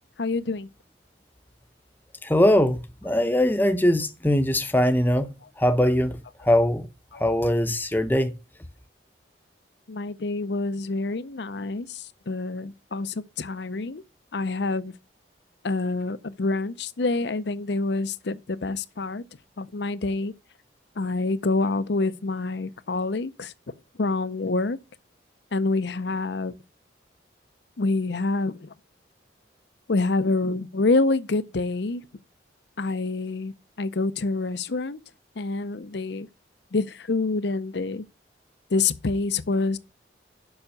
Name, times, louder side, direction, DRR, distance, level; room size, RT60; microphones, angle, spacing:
voice 1, 0.2-0.7 7.1-7.2 9.9-14.0 14.3-14.9 15.6-19.2 19.6-20.3 21.0-23.5 24.0-24.8 25.5-26.5 27.8-28.7 29.9-32.0 32.8-35.0 35.4-36.3 36.7-38.0 38.7-39.8, left 3 dB, 65° left, 0.6 m, -27 dB
voice 2, 2.2-5.3 5.6-6.2 6.4-6.9 7.1-8.3, left 1 dB, 10° left, 0.7 m, -21 dB
7.1 x 5.8 x 6.5 m
head